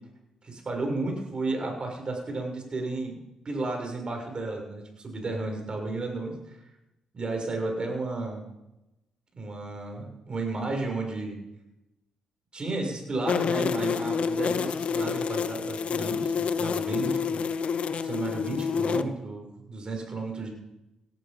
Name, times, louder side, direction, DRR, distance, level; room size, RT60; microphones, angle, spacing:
voice 1, 0.4-6.6 7.1-8.4 9.4-11.4 12.5-17.4 18.0-20.5, right 2 dB, 40° right, 2 dB, 6.8 m, -33 dB
sound 1, 13.3-19.0, left 6 dB, 55° left, 0.8 m, -28 dB
18.0 x 12.5 x 5.4 m, 0.94 s
hypercardioid pair, 45°, 2 cm